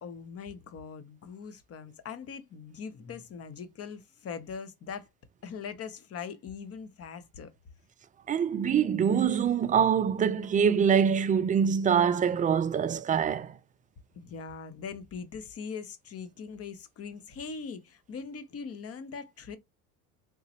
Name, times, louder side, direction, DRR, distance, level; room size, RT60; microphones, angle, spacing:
voice 1, 0.0-5.1 5.4-7.5 14.2-19.6, left 6 dB, 35° left, 0.9 m, -41 dB
voice 2, 8.3-13.6, right 7 dB, 20° right, 0.4 m, -24 dB
3.7 x 2.9 x 2.9 m
hypercardioid pair, 85°, 43 cm